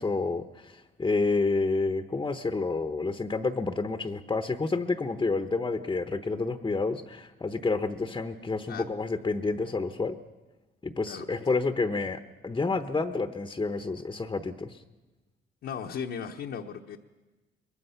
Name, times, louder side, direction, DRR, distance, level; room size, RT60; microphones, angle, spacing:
voice 1, 0.0-10.2 10.8-14.8, left 3 dB, 20° left, 8 dB, 0.9 m, -29 dB
voice 2, 15.6-17.0, left 7 dB, 65° left, 1 dB, 1.0 m, -36 dB
23.0 x 21.0 x 5.7 m, 1.2 s
cardioid pair, 90°, 20 cm